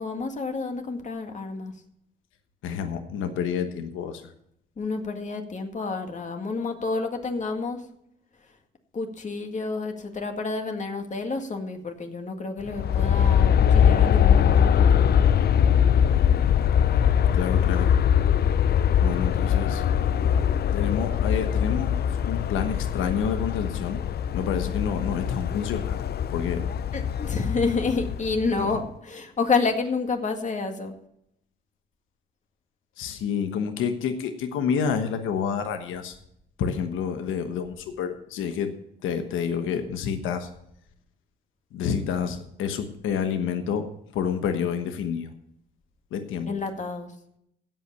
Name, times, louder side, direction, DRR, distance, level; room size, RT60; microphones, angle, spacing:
voice 1, 0.0-1.7 4.8-7.8 8.9-15.1 26.9-30.9 46.5-47.1, left 4 dB, 40° left, 5 dB, 2.1 m, -29 dB
voice 2, 2.6-4.2 17.3-17.9 19.0-19.8 20.7-24.0 24.3-26.0 26.3-26.6 28.6-28.7 33.0-36.1 36.6-38.7 39.0-40.5 41.7-43.9 44.1-45.3 46.1-46.5, left 7 dB, 85° left, 7 dB, 1.2 m, -28 dB
Aircraft, 12.6-28.7, left 8 dB, 55° left, 0.6 m, -22 dB
16.0 x 5.6 x 6.9 m, 0.74 s
cardioid pair, 90°, 20 cm